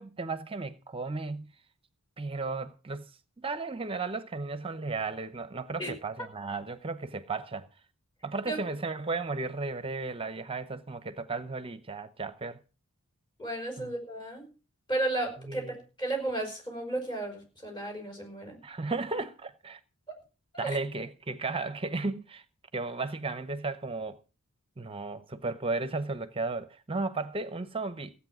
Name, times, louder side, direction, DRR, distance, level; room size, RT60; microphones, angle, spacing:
voice 1, 0.0-1.5 2.2-3.1 3.4-7.7 8.2-12.6 13.8-13.9 15.5-15.7 18.6-19.8 20.6-22.4 22.7-24.2 24.8-28.1, right 3 dB, 25° right, 0.8 m, -34 dB
voice 2, 13.4-14.5 14.9-18.6 20.1-20.2 20.5-20.8, right 2 dB, 20° left, 5.2 m, -34 dB
16.0 x 8.5 x 6.0 m
head